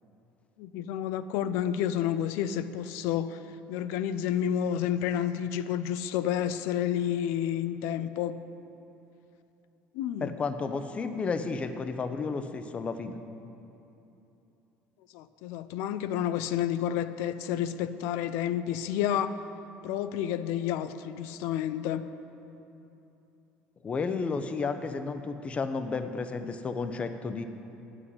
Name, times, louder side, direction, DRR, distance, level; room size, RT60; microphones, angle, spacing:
voice 1, 0.6-3.4 3.7-8.4 9.9-10.3 15.1-19.4 19.8-22.1, left 10 dB, 80° left, 12 dB, 0.4 m, -30 dB
voice 2, 10.2-13.2 23.8-27.4, left 4 dB, 25° left, 9 dB, 0.6 m, -32 dB
9.5 x 6.2 x 7.7 m, 2.9 s
cardioid pair, 125°, 5 cm